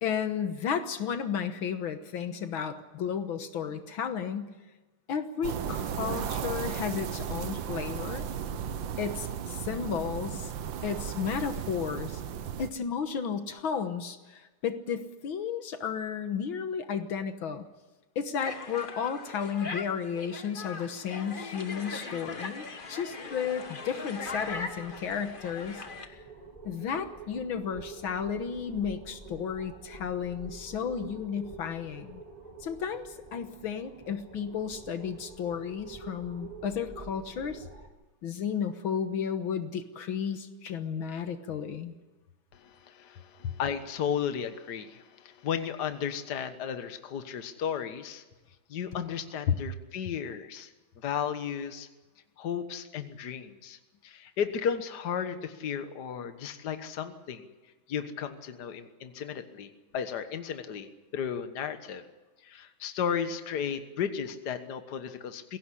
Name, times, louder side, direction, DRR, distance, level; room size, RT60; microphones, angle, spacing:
voice 1, 0.0-4.5 5.1-8.3 9.0-10.5 10.8-12.2 12.6-17.7 18.2-26.2 26.7-32.2 32.6-37.7 38.2-42.0 49.5-49.6, left 7 dB, 75° left, 8 dB, 2.0 m, -33 dB
sound 1, 5.4-12.7, right 8 dB, 70° right, 1.7 m, -35 dB
sound 2, 18.4-26.1, left 4 dB, 30° left, 1.2 m, -40 dB
sound 3, 24.2-37.9, right 3 dB, 20° right, 2.6 m, -47 dB
voice 2, 42.5-48.2 48.7-51.9 52.4-57.5 57.9-62.0 62.4-65.6, left 8 dB, 55° left, 9 dB, 1.8 m, -34 dB
22.0 x 17.0 x 10.0 m, 1.2 s
omnidirectional pair, 2.3 m